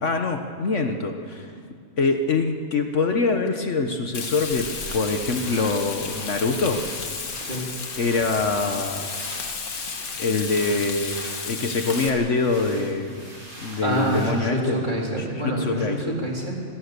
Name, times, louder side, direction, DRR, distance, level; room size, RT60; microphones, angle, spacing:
voice 1, 0.0-1.5 2.0-4.7 4.9-6.8 8.0-9.1 10.2-13.2 13.6-14.8 15.4-16.2, left 3 dB, 55° left, 5 dB, 1.4 m, -24 dB
sound 1, 4.0-14.6, equal, 75° right, 6.2 m, -41 dB
Frying (food), 4.1-12.1, left 5 dB, 80° left, 2.0 m, -33 dB
voice 2, 13.8-16.5, right 1 dB, 30° right, -2 dB, 3.9 m, -26 dB
26.5 x 17.5 x 6.8 m, 2.3 s
omnidirectional pair, 1.5 m